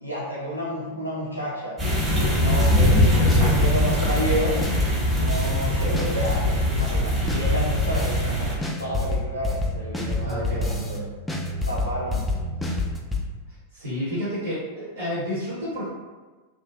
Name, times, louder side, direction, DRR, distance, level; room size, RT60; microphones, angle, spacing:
voice 1, 0.0-1.8 2.3-4.6 5.1-11.1 11.6-12.4, equal, 85° left, -6 dB, 0.5 m, -30 dB
sound 1, 1.8-8.5, left 1 dB, 10° right, 1.1 m, -22 dB
sound 2, 2.6-3.0 3.3-5.7 5.9-8.3 8.6-11.0 11.3-13.3, left 3 dB, 10° left, 0.3 m, -27 dB
Bass guitar, 4.1-4.5 4.7-6.9 7.1-9.3 9.5-11.7 11.9-12.8, right 2 dB, 90° right, 0.8 m, -34 dB
voice 2, 10.2-10.7 13.7-15.9, equal, 60° right, -9 dB, 0.9 m, -30 dB
2.4 x 2.1 x 2.6 m, 1.3 s
figure-of-eight pair, 90°, 0 cm